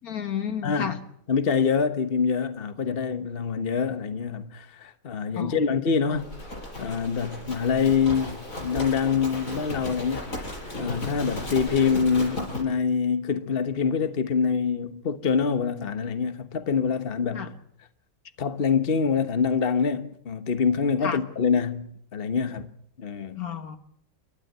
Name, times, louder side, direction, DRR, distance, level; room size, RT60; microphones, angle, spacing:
voice 1, 0.0-1.0 5.4-5.6 17.4-17.5 21.0-21.2 23.4-23.8, left 8 dB, 80° left, 2.0 m, -31 dB
voice 2, 0.6-1.0 1.3-6.3 6.8-17.5 18.4-22.7 23.0-23.4, left 6 dB, 40° left, 1.3 m, -25 dB
Livestock farm animals working animals, 6.2-12.6, left 1 dB, 65° left, 6.6 m, -35 dB
29.0 x 12.5 x 8.1 m
omnidirectional pair, 1.5 m